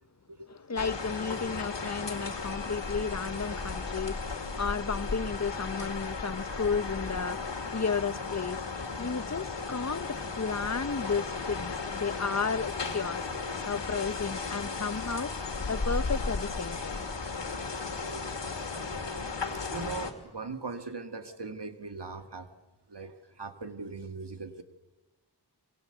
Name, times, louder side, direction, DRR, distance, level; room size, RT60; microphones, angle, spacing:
voice 1, 0.7-13.3 13.6-15.3 15.7-17.0, left 5 dB, 40° left, 0.9 m, -33 dB
sound 1, 0.8-20.1, left 4 dB, 90° left, 2.4 m, -35 dB
voice 2, 18.0-18.4 18.8-19.2 19.5-22.6 22.9-24.6, right 4 dB, 70° right, 2.2 m, -40 dB
25.5 x 24.0 x 8.1 m
wide cardioid pair, 40°, 42 cm